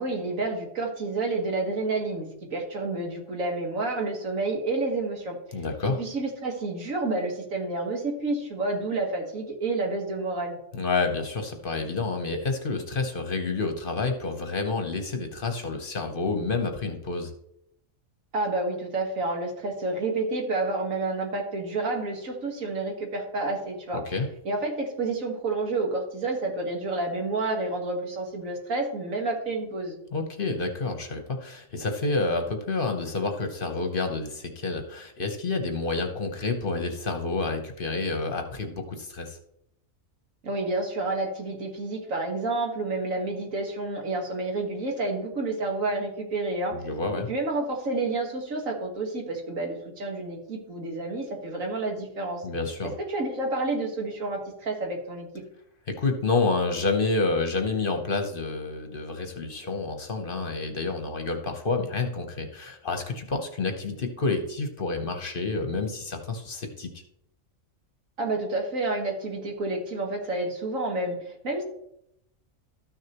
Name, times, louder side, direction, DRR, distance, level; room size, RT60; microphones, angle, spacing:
voice 1, 0.0-5.6 6.0-10.6 18.3-24.0 24.4-30.0 40.4-46.8 47.3-52.4 52.8-55.3 68.2-71.2 71.4-71.6, right 2 dB, 80° right, 1 dB, 2.0 m, -29 dB
voice 2, 5.5-6.0 10.7-17.3 24.1-24.3 30.1-39.4 46.7-47.3 52.4-52.9 55.9-67.0, left 3 dB, 45° left, 6 dB, 1.0 m, -29 dB
13.0 x 6.4 x 3.0 m, 0.76 s
omnidirectional pair, 1.4 m